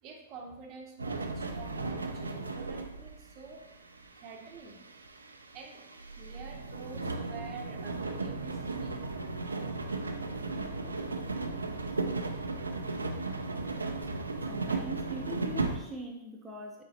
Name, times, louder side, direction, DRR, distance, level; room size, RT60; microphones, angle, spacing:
voice 1, 0.0-3.6 4.2-4.8 5.5-5.8 6.2-9.0, right 4 dB, 40° right, 2 dB, 0.7 m, -47 dB
sound 1, 1.0-15.8, right 3 dB, 90° right, 0.4 m, -36 dB
voice 2, 14.5-16.8, equal, 5° right, -2 dB, 0.6 m, -42 dB
4.2 x 3.9 x 2.8 m, 0.90 s
hypercardioid pair, 105°, 0 cm